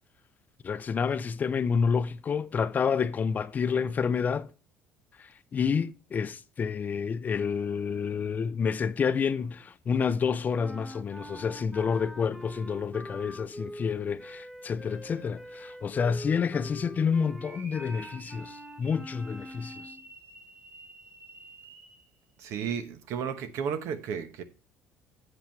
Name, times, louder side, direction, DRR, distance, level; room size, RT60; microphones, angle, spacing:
voice 1, 0.6-4.5 5.2-19.9, left 6 dB, 35° left, 0.5 m, -29 dB
sound 1, 10.5-20.1, equal, 10° right, 0.9 m, -44 dB
sound 2, 17.4-22.1, right 3 dB, 40° right, 1.9 m, -50 dB
voice 2, 22.4-24.4, right 7 dB, 70° right, 1.0 m, -33 dB
8.0 x 7.6 x 4.5 m
cardioid pair, 105°, 5 cm